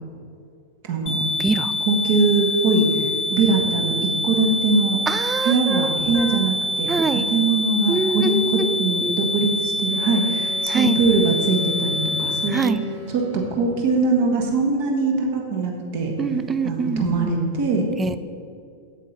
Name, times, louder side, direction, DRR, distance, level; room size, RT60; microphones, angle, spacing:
voice 1, 0.9-1.2 1.8-3.0 3.3-3.9 4.2-5.0 5.4-16.1 16.6-17.8, right 3 dB, 50° right, 1 dB, 1.4 m, -22 dB
sound 1, 1.1-12.5, left 1 dB, 25° left, 1.0 m, -25 dB
voice 2, 5.1-5.9 6.2-6.4 6.9-7.3 7.9-9.1 10.7-11.0 12.5-12.8 16.2-17.3 18.0-18.2, right 5 dB, 15° right, 13 dB, 0.4 m, -24 dB
Wind instrument woodwind instrument, 9.8-13.9, left 9 dB, 80° right, 2.3 m, -41 dB
8.2 x 7.9 x 4.2 m, 2.3 s
figure-of-eight pair, 90°, 0 cm